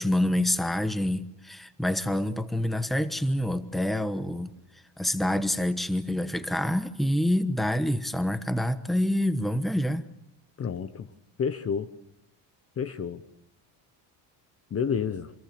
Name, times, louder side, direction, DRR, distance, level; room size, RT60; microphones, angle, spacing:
voice 1, 0.0-4.5 5.0-10.1, left 1 dB, ahead, 1.1 m, -27 dB
voice 2, 10.6-11.1 11.4-11.9 12.8-13.2 14.7-15.3, left 6 dB, 30° left, 1.0 m, -29 dB
27.5 x 22.0 x 6.8 m
cardioid pair, 125°, 44 cm